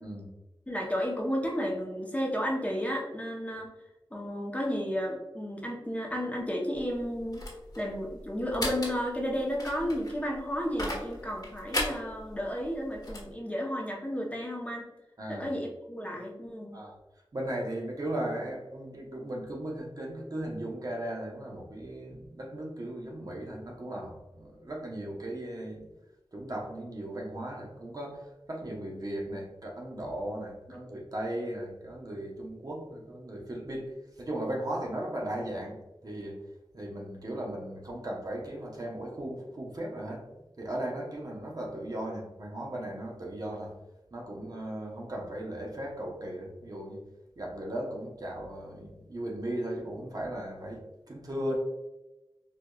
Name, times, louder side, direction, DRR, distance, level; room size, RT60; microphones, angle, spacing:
voice 1, 0.7-3.7 4.1-7.4 7.8-14.9 15.3-16.8, equal, 15° left, -1 dB, 0.7 m, -32 dB
sound 1, 6.7-13.3, left 1 dB, 45° left, 1.2 m, -37 dB
voice 2, 15.2-15.5 16.7-17.0 17.3-25.9 26.3-36.4 36.7-40.3 40.6-43.7 44.1-47.0 47.4-51.6, right 1 dB, 45° right, -1 dB, 0.8 m, -37 dB
4.8 x 2.4 x 2.2 m, 1.0 s
wide cardioid pair, 70°, 9 cm